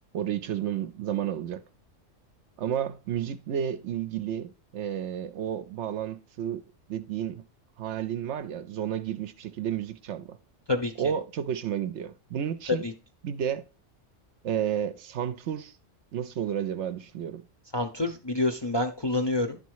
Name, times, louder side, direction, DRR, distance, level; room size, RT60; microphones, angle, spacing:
voice 1, 0.1-1.6 2.6-6.6 6.9-7.4 7.8-10.4 11.0-12.8 13.2-13.6 14.4-15.7 16.1-17.4, right 9 dB, 70° right, 0.8 m, -31 dB
voice 2, 10.7-11.1 12.8-12.9 17.7-19.6, left 2 dB, 30° left, 0.6 m, -28 dB
10.5 x 4.1 x 4.6 m
omnidirectional pair, 1.3 m